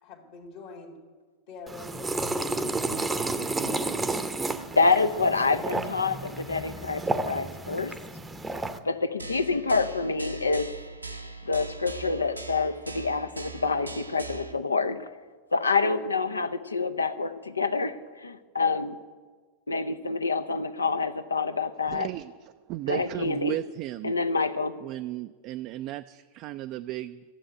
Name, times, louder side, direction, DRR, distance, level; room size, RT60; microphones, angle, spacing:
voice 1, 0.0-1.0 1.5-2.9, left 4 dB, 50° left, -2 dB, 1.9 m, -45 dB
sound 1, 1.7-8.8, right 2 dB, 10° right, 0.7 m, -31 dB
voice 2, 4.8-7.9 8.8-10.7 11.4-15.1 15.5-19.0 19.7-22.1 22.9-23.6 24.0-24.8, left 4 dB, 75° left, 12 dB, 0.7 m, -27 dB
sound 2, 9.2-14.5, right 2 dB, 85° right, 0.9 m, -41 dB
voice 3, 21.9-22.3 22.7-24.1 24.8-27.2, right 16 dB, 40° right, 9 dB, 0.4 m, -34 dB
13.0 x 7.8 x 9.5 m, 1.4 s
figure-of-eight pair, 90°, 0 cm